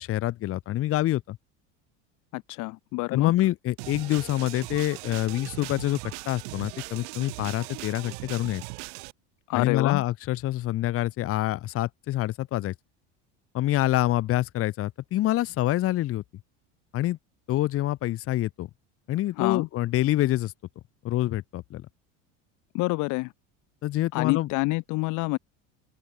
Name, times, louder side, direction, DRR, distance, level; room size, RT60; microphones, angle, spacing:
voice 1, 0.0-1.4 3.1-6.0 6.2-8.6 9.5-12.7 13.5-16.2 16.9-17.2 17.5-18.7 19.1-20.5 21.0-21.9 23.8-24.5, left 15 dB, 40° left, 1.5 m, -26 dB
voice 2, 2.3-3.3 9.5-10.0 19.4-19.7 22.7-23.3 24.1-25.4, left 24 dB, 55° left, 1.5 m, -27 dB
sound 1, 3.8-9.1, right 30 dB, 80° right, 3.8 m, -39 dB
open air
cardioid pair, 155°, 35 cm